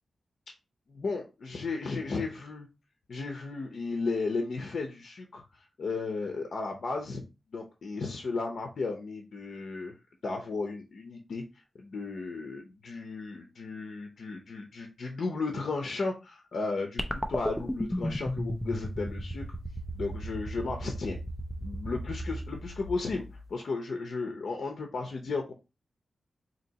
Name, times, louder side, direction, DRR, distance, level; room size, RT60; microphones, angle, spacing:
voice 1, 0.9-2.7 3.1-5.4 5.8-7.2 7.5-9.9 10.2-11.4 11.8-17.0 17.3-19.4 19.9-21.2 21.6-23.2 23.5-25.5, left 3 dB, 60° left, 2 dB, 0.7 m, -34 dB
sound 1, 17.0-23.5, equal, 5° left, 0.4 m, -35 dB
4.1 x 2.8 x 2.8 m, 0.27 s
wide cardioid pair, 165°, 0 cm